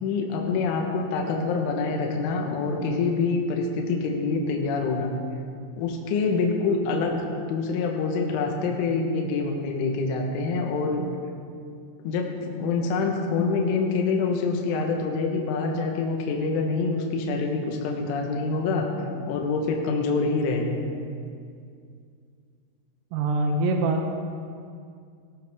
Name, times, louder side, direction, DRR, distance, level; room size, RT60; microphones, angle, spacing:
voice 1, 0.0-5.1 5.8-11.1 12.1-18.9 19.3-21.0, left 4 dB, 75° left, 1 dB, 3.6 m, -26 dB
voice 2, 23.1-24.1, right 2 dB, 85° right, 3 dB, 3.6 m, -24 dB
17.5 x 14.5 x 3.6 m, 2.3 s
omnidirectional pair, 5.7 m